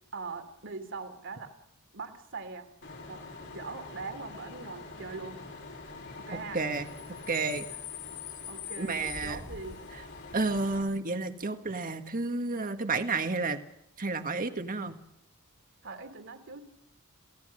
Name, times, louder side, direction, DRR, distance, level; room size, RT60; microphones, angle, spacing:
voice 1, 0.1-1.5 1.9-2.7 3.0-3.2 3.5-5.4 6.2-6.6 8.5-9.8 15.8-16.7, right 4 dB, 60° right, 7 dB, 2.9 m, -41 dB
Bus / Idling / Screech, 2.8-10.8, left 5 dB, 60° left, 5.6 m, -43 dB
voice 2, 6.3-6.9 7.3-7.6 8.8-9.4 10.3-13.6 14.0-14.9, right 3 dB, 40° right, 7 dB, 1.8 m, -31 dB
28.5 x 17.0 x 6.6 m, 0.79 s
head